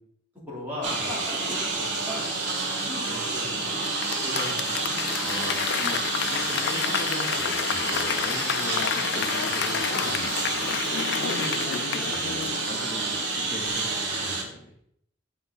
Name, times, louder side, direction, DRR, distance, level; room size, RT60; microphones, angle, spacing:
voice 1, 0.5-2.3 2.8-3.6 4.2-5.0 11.2-11.6, left 1 dB, 10° right, -8 dB, 3.1 m, -37 dB
Engine, 0.8-14.4, right 3 dB, 65° right, 1.5 m, -29 dB
Applause / Crowd, 3.8-13.3 13.6-13.7, left 9 dB, 60° left, 0.4 m, -30 dB
voice 2, 5.2-10.8 11.7-14.7, left 1 dB, 35° left, 0 dB, 0.8 m, -40 dB
7.6 x 4.8 x 4.0 m, 0.70 s
head